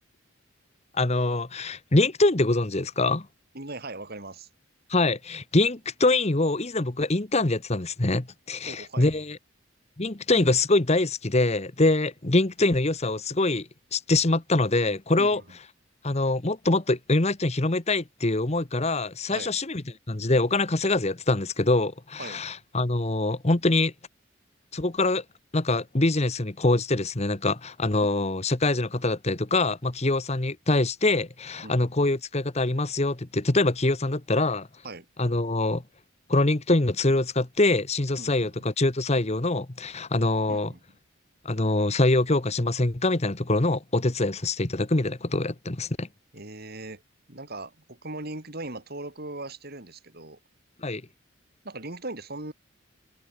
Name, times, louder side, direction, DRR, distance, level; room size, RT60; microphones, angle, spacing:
voice 1, 0.9-3.3 4.9-9.4 10.0-15.4 16.0-19.8 20.1-23.9 24.7-25.2 25.5-34.7 35.2-35.8 36.3-40.7 41.4-46.1 50.8-51.0, left 2 dB, 30° left, 1.2 m, -24 dB
voice 2, 3.5-4.5 8.7-9.1 15.2-15.6 19.3-19.5 22.2-22.4 28.0-28.1 31.6-32.1 34.8-35.1 38.2-38.7 40.5-40.8 46.3-47.0 47.3-50.4 51.6-52.5, right 2 dB, 50° right, 4.0 m, -39 dB
head